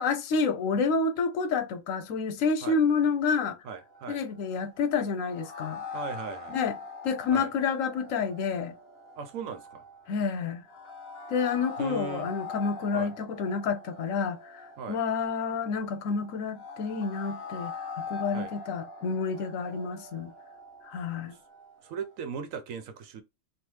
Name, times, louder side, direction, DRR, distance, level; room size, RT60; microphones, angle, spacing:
voice 1, 0.0-3.6 4.1-5.8 6.5-6.8 7.0-8.7 10.1-10.6 11.3-14.6 14.9-17.7 18.1-20.3 20.8-21.3, left 5 dB, 80° left, 1.1 m, -29 dB
voice 2, 3.6-4.2 5.9-6.6 7.3-7.5 9.2-9.8 11.8-12.3 12.9-13.1 14.8-15.0 18.3-18.5 21.8-23.2, right 6 dB, 85° right, 1.1 m, -38 dB
sound 1, 3.7-22.2, left 4 dB, 55° left, 1.0 m, -43 dB
3.5 x 2.4 x 3.0 m
omnidirectional pair, 1.4 m